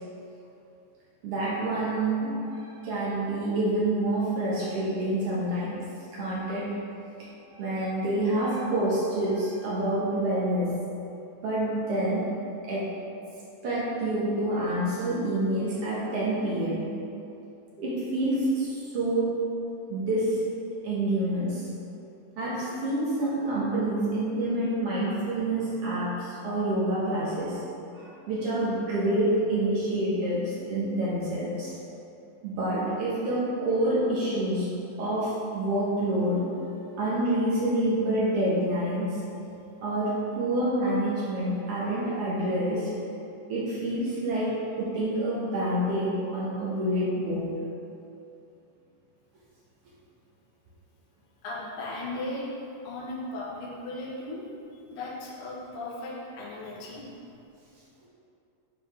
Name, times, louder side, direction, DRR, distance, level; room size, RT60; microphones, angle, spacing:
voice 1, 1.2-5.8 6.1-6.7 7.5-10.7 11.4-12.3 12.6-12.9 13.6-16.9 17.8-19.4 19.9-20.4 20.8-21.7 22.4-27.6 27.9-31.8 32.4-34.7 35.0-36.4 37.0-39.2 39.8-42.9 43.5-47.5, right 1 dB, 85° right, -7 dB, 1.3 m, -27 dB
voice 2, 51.4-52.5 52.8-54.4 54.7-57.0, left 2 dB, 85° left, -5 dB, 1.2 m, -36 dB
11.0 x 4.7 x 3.6 m, 2.7 s
omnidirectional pair, 4.8 m